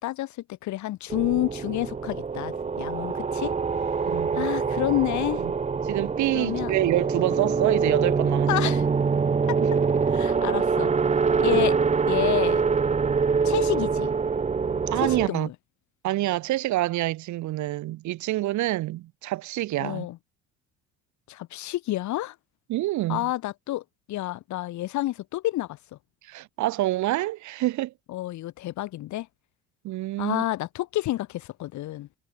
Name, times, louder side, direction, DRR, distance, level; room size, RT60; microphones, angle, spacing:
voice 1, 0.0-3.5 4.3-5.4 6.3-6.7 8.5-8.8 9.5-9.6 10.1-10.9 11.4-11.8 12.1-12.6 13.4-14.1 15.0-15.5 19.8-20.2 21.3-22.4 23.1-25.8 28.1-29.3 30.2-32.1, left 15 dB, 70° left, 3.8 m, -29 dB
sound 1, 1.1-15.3, right 5 dB, 20° right, 1.4 m, -25 dB
voice 2, 4.1-4.5 5.4-5.5 5.8-8.5 11.5-11.6 14.9-15.5 16.0-20.1 22.7-23.3 26.2-27.9 29.8-30.4, right 16 dB, 70° right, 2.8 m, -27 dB
cardioid pair, 115°, 30 cm